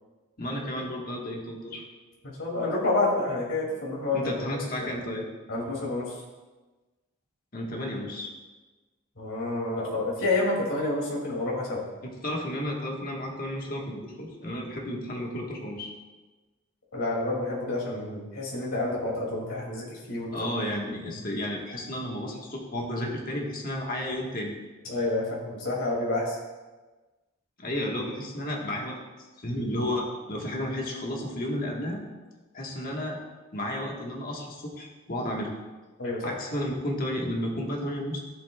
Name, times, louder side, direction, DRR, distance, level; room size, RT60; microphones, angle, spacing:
voice 1, 0.4-1.8 4.1-5.3 7.5-8.3 12.0-15.9 20.3-24.5 27.6-29.0 29.4-32.0 32.5-33.2 33.5-35.5 36.2-38.2, left 1 dB, 45° left, -1 dB, 1.4 m, -32 dB
voice 2, 2.2-4.2 4.8-4.9 5.5-6.1 9.2-11.8 16.9-20.5 21.0-21.1 24.8-26.4 36.0-36.3, left 2 dB, 75° left, -4 dB, 2.5 m, -29 dB
14.5 x 7.7 x 2.3 m, 1.2 s
head